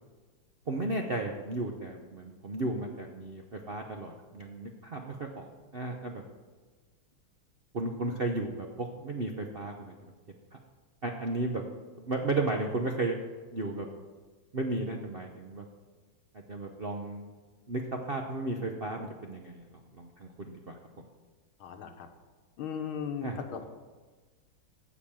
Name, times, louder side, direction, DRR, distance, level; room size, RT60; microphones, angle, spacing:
voice 1, 0.7-6.2 7.7-9.9 11.0-11.6 12.0-13.2 13.5-13.9 14.5-15.7 16.3-17.2 17.7-20.8 23.2-23.4, right 2 dB, 55° right, 2 dB, 0.6 m, -34 dB
voice 2, 21.6-22.1 22.6-23.7, left 7 dB, 80° left, 6 dB, 1.9 m, -37 dB
15.0 x 5.1 x 7.3 m, 1.4 s
omnidirectional pair, 2.3 m